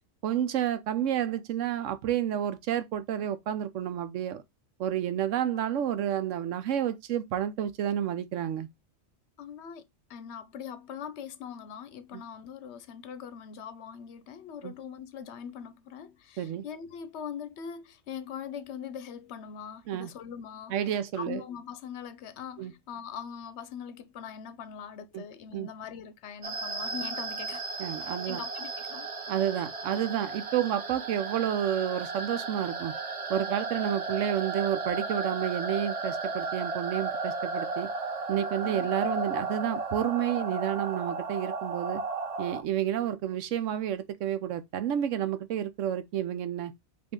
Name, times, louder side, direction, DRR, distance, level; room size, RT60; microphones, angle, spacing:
voice 1, 0.2-4.4 4.8-8.7 12.1-12.2 14.6-14.7 16.4-16.6 19.9-20.1 20.7-21.4 22.6-22.7 25.1-25.2 25.5-25.7 27.8-28.4 29.3-32.9 33.3-37.9 38.3-42.0 42.4-46.7, right 10 dB, 80° right, 1.0 m, -30 dB
voice 2, 9.4-27.7 28.3-29.1 29.6-29.7 38.6-38.9, left 8 dB, 65° left, 0.9 m, -42 dB
sound 1, 26.4-42.6, right 3 dB, 40° right, 0.5 m, -34 dB
5.1 x 2.7 x 3.6 m
omnidirectional pair, 1.3 m